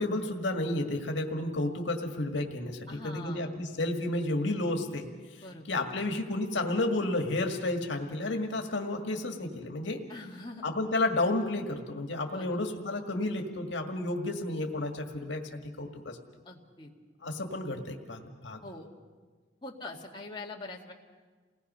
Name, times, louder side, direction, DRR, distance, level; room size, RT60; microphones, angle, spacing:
voice 1, 0.0-5.1 5.4-10.0 10.6-16.2 17.2-18.6, left 2 dB, 75° left, 3 dB, 1.8 m, -31 dB
voice 2, 2.9-3.5 5.4-5.6 10.1-10.8 12.3-12.6 16.5-16.9 18.6-18.9 19.6-20.9, left 2 dB, 25° left, -2 dB, 2.0 m, -43 dB
29.0 x 19.0 x 5.6 m, 1.4 s
head